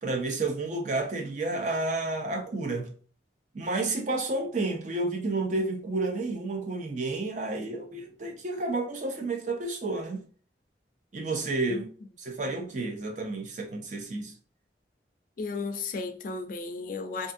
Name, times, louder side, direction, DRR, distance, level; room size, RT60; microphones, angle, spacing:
voice 1, 0.0-2.9 3.5-10.2 11.1-11.9 12.2-14.3, right 2 dB, 40° right, 0.4 m, -31 dB
voice 2, 15.4-17.3, left 4 dB, 45° left, 0.3 m, -34 dB
2.7 x 2.5 x 2.5 m
head